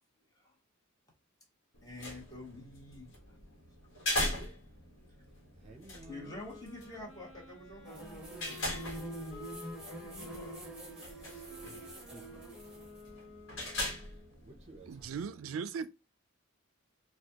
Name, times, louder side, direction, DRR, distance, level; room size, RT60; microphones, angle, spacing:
sound 1, 1.7-15.2, left 1 dB, 60° left, 1.2 m, -41 dB
voice 1, 1.8-3.4 4.3-4.6 6.0-8.8 9.7-10.6, left 2 dB, 15° left, 1.2 m, -49 dB
voice 2, 5.5-6.5 11.6-12.4 14.0-14.1 14.4-15.5, right 2 dB, 30° right, 0.6 m, -55 dB
Wind instrument woodwind instrument, 6.0-14.4, left 3 dB, 85° left, 1.0 m, -52 dB
sound 2, 7.8-13.0, right 2 dB, 5° right, 1.3 m, -45 dB
voice 3, 14.9-15.9, right 6 dB, 75° right, 0.4 m, -38 dB
4.2 x 2.3 x 2.9 m
head